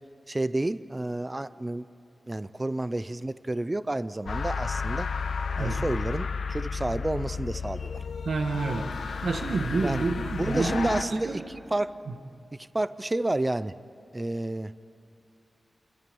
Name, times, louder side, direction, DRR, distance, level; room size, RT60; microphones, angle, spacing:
voice 1, 0.3-1.8 2.3-5.1 5.6-7.9 9.8-10.0 10.4-11.9 12.7-13.7 14.1-14.7, right 2 dB, 20° right, 14 dB, 0.4 m, -30 dB
sound 1, 4.3-11.0, left 5 dB, 80° left, 1.0 m, -32 dB
voice 2, 8.2-11.4 12.1-12.2, right 3 dB, 75° right, 5 dB, 1.7 m, -29 dB
28.0 x 24.0 x 5.5 m, 2.9 s
wide cardioid pair, 150°, 0 cm